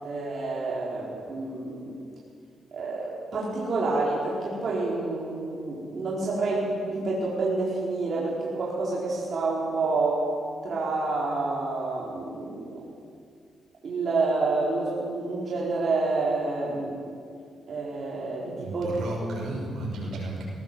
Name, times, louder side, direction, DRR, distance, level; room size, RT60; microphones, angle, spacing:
voice 1, 0.0-2.0 2.7-10.2 10.6-12.8 13.8-17.0 17.7-19.0, right 3 dB, 55° right, -5 dB, 4.3 m, -28 dB
voice 2, 18.6-20.4, right 2 dB, 80° right, -1 dB, 6.3 m, -33 dB
19.5 x 18.0 x 7.6 m, 2.2 s
cardioid pair, 100°, 0 cm